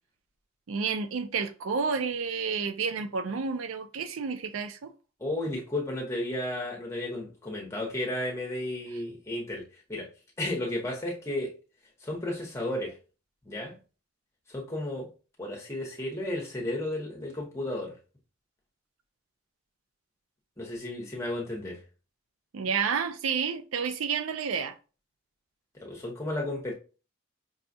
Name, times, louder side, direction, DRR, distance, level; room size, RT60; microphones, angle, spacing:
voice 1, 0.7-4.9 22.5-24.8, right 6 dB, 85° right, 0.4 m, -30 dB
voice 2, 5.2-9.6 9.9-10.1 10.4-11.5 12.0-13.0 13.4-13.7 14.5-15.1 15.4-18.0 20.6-21.8 25.7-26.7, left 1 dB, 15° left, 0.9 m, -33 dB
5.4 x 2.3 x 2.6 m
head